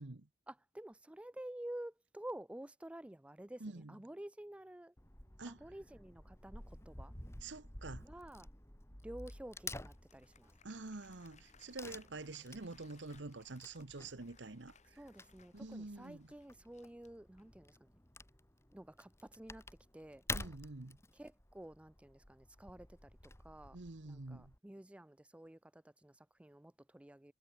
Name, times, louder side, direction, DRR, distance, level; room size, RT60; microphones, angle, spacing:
voice 1, 0.5-3.6 3.9-4.9 5.5-7.1 8.0-8.5 9.0-10.5 15.0-17.9 18.7-19.6 19.9-20.2 21.1-23.1 23.4-23.8 24.1-27.3, right 1 dB, 5° right, 0.3 m, -50 dB
voice 2, 3.6-4.0 5.4-5.6 7.4-8.0 10.6-15.0 15.5-16.3 20.3-21.0 23.7-24.5, right 3 dB, 75° right, 1.2 m, -47 dB
Wood / Tearing, 5.0-24.6, left 2 dB, 15° left, 2.1 m, -51 dB
Applause, 9.5-17.7, left 6 dB, 40° left, 3.5 m, -69 dB
head